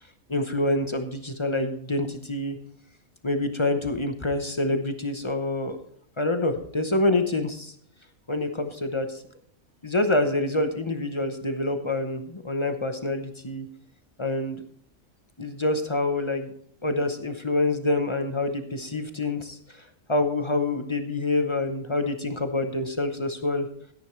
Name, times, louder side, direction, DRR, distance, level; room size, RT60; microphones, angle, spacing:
voice 1, 0.3-2.6 3.2-5.8 6.2-7.7 8.3-9.2 9.8-13.7 14.2-14.6 15.4-16.5 16.8-19.6 20.1-23.7, left 2 dB, 25° left, 7 dB, 0.7 m, -26 dB
13.0 x 10.5 x 3.2 m, 0.63 s
omnidirectional pair, 1.4 m